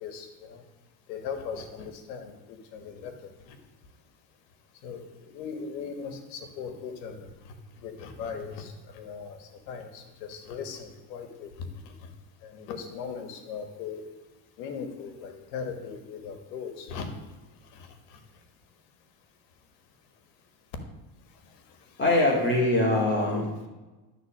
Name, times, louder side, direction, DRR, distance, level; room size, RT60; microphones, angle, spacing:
voice 1, 0.0-0.6 1.1-3.6 4.8-12.1 12.4-14.0 14.6-17.1 17.6-18.2 21.4-22.0, left 6 dB, 90° left, 7 dB, 1.6 m, -39 dB
voice 2, 22.0-23.7, left 2 dB, 25° left, -2 dB, 2.6 m, -23 dB
12.0 x 4.0 x 7.3 m, 1.1 s
supercardioid pair, 95°, 49 cm